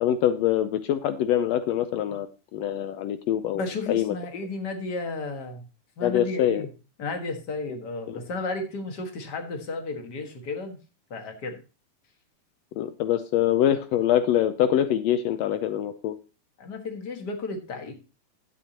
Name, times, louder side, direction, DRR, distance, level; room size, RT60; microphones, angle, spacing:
voice 1, 0.0-2.3 2.5-3.6 3.9-4.1 6.0-6.7 8.1-8.2 12.8-16.1, left 11 dB, 85° left, 11 dB, 1.4 m, -24 dB
voice 2, 3.5-5.6 6.0-6.7 7.0-10.8 11.1-11.6 16.6-17.9, left 3 dB, 40° left, 5 dB, 1.7 m, -33 dB
11.5 x 9.7 x 2.9 m, 0.31 s
omnidirectional pair, 3.7 m